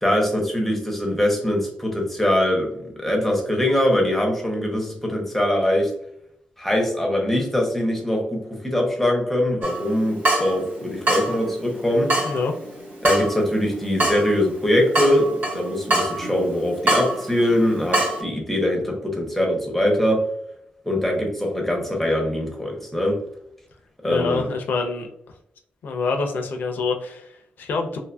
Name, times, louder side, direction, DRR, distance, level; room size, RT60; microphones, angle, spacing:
voice 1, 0.0-5.9 6.6-12.2 13.0-20.3 20.9-23.2 24.0-24.5, left 1 dB, 5° left, 1 dB, 0.7 m, -22 dB
Water tap faucet / Drip, 9.6-18.2, right 1 dB, 65° right, 1.1 m, -26 dB
voice 2, 12.2-12.5 24.1-25.1 25.8-28.0, left 4 dB, 80° left, 4 dB, 0.5 m, -26 dB
2.7 x 2.6 x 2.2 m, 0.71 s
wide cardioid pair, 145°, 3 cm